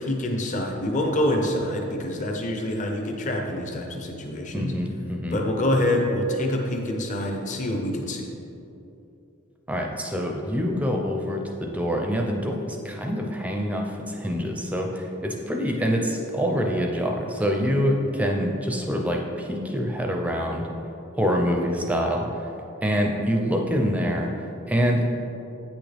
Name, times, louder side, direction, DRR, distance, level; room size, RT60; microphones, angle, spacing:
voice 1, 0.0-4.7 5.3-8.3, left 1 dB, 40° left, 1 dB, 0.8 m, -26 dB
voice 2, 4.5-5.4 9.7-12.6 12.8-20.7 21.2-22.5 22.8-24.3 24.7-25.0, equal, 5° right, 1 dB, 0.5 m, -25 dB
8.5 x 6.2 x 3.4 m, 2.8 s
head